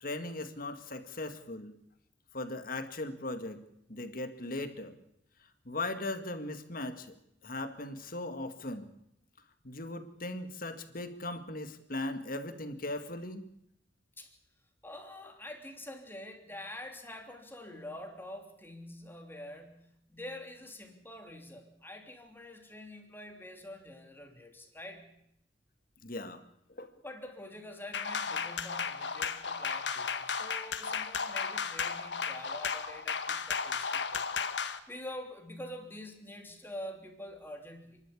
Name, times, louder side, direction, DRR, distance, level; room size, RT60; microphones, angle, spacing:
voice 1, 0.0-1.7 2.3-3.6 3.9-5.0 5.7-7.1 7.4-8.9 9.6-13.4 26.0-26.4 26.7-26.9, left 2 dB, 55° left, 8 dB, 2.0 m, -38 dB
voice 2, 14.8-25.1 27.0-38.0, left 1 dB, 10° left, 4 dB, 3.1 m, -46 dB
sound 1, 27.9-34.8, left 6 dB, 75° left, 1.6 m, -34 dB
29.5 x 12.0 x 8.5 m, 0.78 s
head